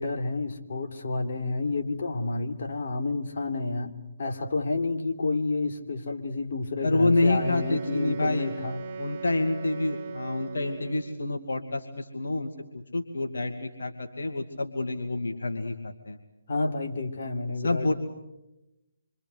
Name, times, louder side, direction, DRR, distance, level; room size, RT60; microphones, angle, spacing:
voice 1, 0.0-3.9 4.2-8.8 16.5-17.9, left 3 dB, 55° left, 4 dB, 3.6 m, -30 dB
voice 2, 6.8-8.5 9.0-12.5 12.9-16.2 17.6-17.9, left 2 dB, 70° left, 4 dB, 2.4 m, -27 dB
Wind instrument woodwind instrument, 7.1-11.3, right 5 dB, 40° right, 3.0 m, -39 dB
28.0 x 25.5 x 8.1 m, 0.95 s
figure-of-eight pair, 150°, 0 cm